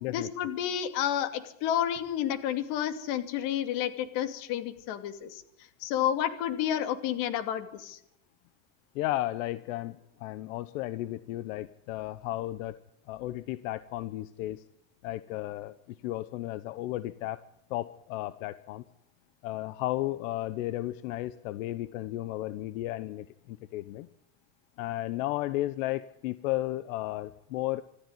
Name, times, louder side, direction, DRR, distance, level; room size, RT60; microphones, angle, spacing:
voice 1, 0.1-5.4 5.8-8.0, left 10 dB, 55° left, 10 dB, 2.5 m, -30 dB
voice 2, 8.9-12.8 13.1-14.6 15.0-15.7 16.0-17.4 17.7-18.8 19.4-24.1 24.8-27.8, left 16 dB, 80° left, 15 dB, 1.1 m, -34 dB
26.0 x 13.5 x 9.7 m, 0.76 s
cardioid pair, 170°, 39 cm